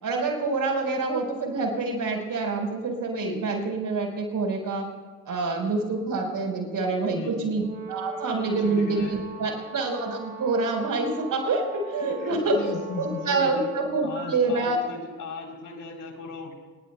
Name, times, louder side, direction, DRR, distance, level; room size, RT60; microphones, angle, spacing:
voice 1, 0.0-4.9 5.2-7.6 7.9-14.8, right 3 dB, 50° right, 2 dB, 4.8 m, -27 dB
voice 2, 7.1-7.5 8.5-9.2 12.0-13.7 14.0-16.5, left 4 dB, 50° left, 2 dB, 3.7 m, -37 dB
Brass instrument, 7.6-14.0, right 3 dB, 25° right, 6.6 m, -41 dB
26.0 x 21.0 x 2.3 m, 1.4 s
hypercardioid pair, 50°, 41 cm